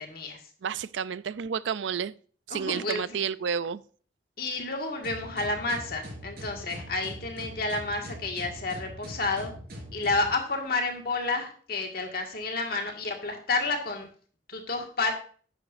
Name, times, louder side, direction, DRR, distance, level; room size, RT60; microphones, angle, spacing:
voice 1, 0.0-0.4 2.5-3.2 4.4-9.5 9.9-14.1 14.5-15.1, left 3 dB, 55° left, 1.8 m, -30 dB
voice 2, 0.6-2.1 2.5-3.8, right 7 dB, 90° right, 0.4 m, -30 dB
sound 1, 5.0-10.3, equal, 55° right, 3.7 m, -42 dB
10.5 x 9.1 x 2.6 m
head